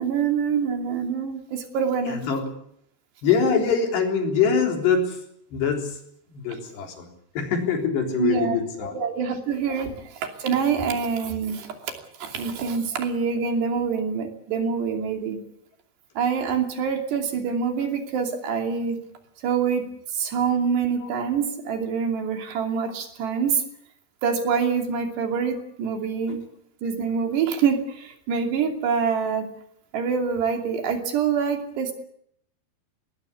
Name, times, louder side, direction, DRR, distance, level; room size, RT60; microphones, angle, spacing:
voice 1, 0.0-2.2 8.2-11.9 12.2-15.4 16.2-19.0 19.4-19.9 20.1-23.6 24.2-26.4 26.8-29.5 29.9-31.9, right 6 dB, 85° right, 4 dB, 5.0 m, -25 dB
voice 2, 2.1-2.4 3.2-5.2 5.5-6.0 6.3-7.1 7.4-9.0 21.0-21.1, left 6 dB, 85° left, 2 dB, 5.9 m, -24 dB
20.5 x 20.0 x 8.4 m, 0.71 s
omnidirectional pair, 4.7 m